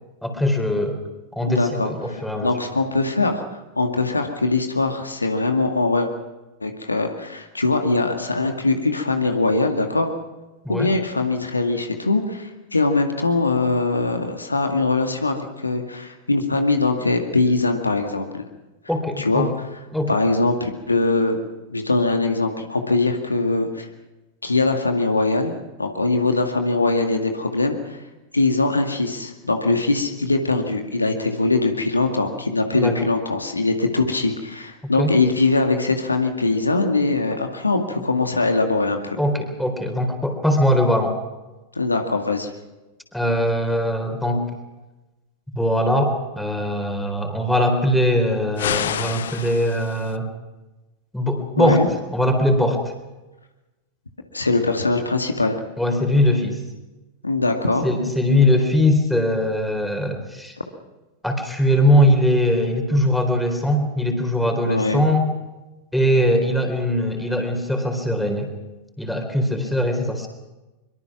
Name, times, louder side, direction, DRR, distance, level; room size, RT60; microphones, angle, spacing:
voice 1, 0.2-1.0 1.4-2.5 10.6-10.9 18.9-19.5 19.9-20.2 32.7-33.0 35.0-35.1 39.2-41.2 43.1-44.4 45.5-50.3 51.1-51.9 52.1-52.8 55.8-56.6 57.8-60.6 61.2-65.3 65.9-68.5 69.0-70.3, left 1 dB, 5° left, 4 dB, 4.1 m, -21 dB
voice 2, 1.4-2.2 2.4-6.1 6.6-10.1 10.7-18.4 19.2-19.5 20.1-21.4 21.7-23.9 24.4-28.0 28.3-39.2 41.8-42.5 51.6-51.9 54.3-55.6 57.2-57.9 64.6-65.0, left 3 dB, 80° left, 5 dB, 2.1 m, -22 dB
sound 1, 48.6-50.2, left 10 dB, 60° left, 0.8 m, -28 dB
23.5 x 23.5 x 6.1 m, 1.1 s
figure-of-eight pair, 90°, 0 cm